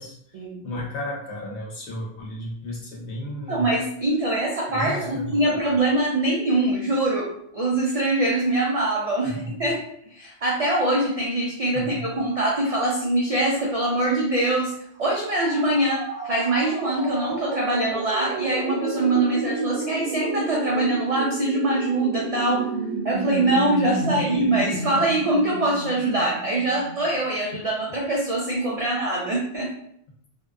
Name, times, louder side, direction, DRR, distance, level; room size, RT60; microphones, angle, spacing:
voice 1, 0.6-3.7 4.7-5.6 9.2-9.5 11.7-12.0 24.0-24.2, left 1 dB, 70° left, -3 dB, 1.0 m, -33 dB
voice 2, 3.5-7.3 7.5-9.8 10.1-14.7 15.0-22.7 23.0-29.7, right 2 dB, 65° right, -3 dB, 0.3 m, -23 dB
sound 1, 15.3-27.0, right 2 dB, 90° right, 1.0 m, -30 dB
2.6 x 2.2 x 2.3 m, 0.70 s
omnidirectional pair, 1.2 m